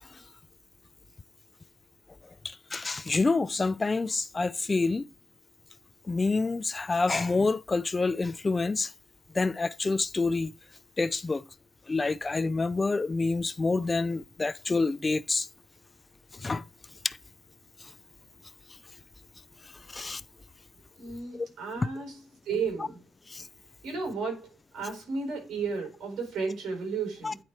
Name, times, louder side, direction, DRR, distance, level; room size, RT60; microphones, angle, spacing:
voice 1, 2.4-5.0 6.1-8.9 9.3-10.5 11.0-11.4 11.9-15.5 16.4-16.6 17.0-17.2 19.9-20.2 21.3-21.5 21.8-21.9 23.3-23.5 27.2-27.3, left 3 dB, 25° left, 0.4 m, -27 dB
voice 2, 21.0-23.0 23.8-27.4, right 5 dB, 75° right, 4.3 m, -33 dB
9.1 x 4.1 x 4.6 m
cardioid pair, 90°, 0 cm